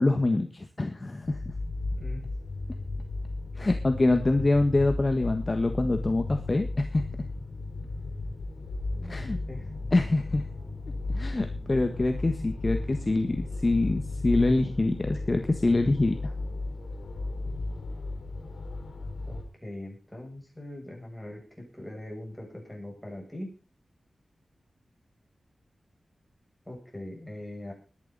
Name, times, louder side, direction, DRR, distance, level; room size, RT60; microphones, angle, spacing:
voice 1, 0.0-1.4 3.6-7.0 9.1-9.4 9.9-10.4 11.1-16.2, left 2 dB, 30° left, 6 dB, 1.4 m, -25 dB
sound 1, 1.2-19.4, left 2 dB, 75° left, 3.9 m, -35 dB
voice 2, 1.9-2.3 8.9-9.6 19.3-23.5 26.7-27.7, left 1 dB, 5° left, -1 dB, 7.7 m, -41 dB
20.5 x 11.0 x 4.1 m, 0.35 s
wide cardioid pair, 115°, 0 cm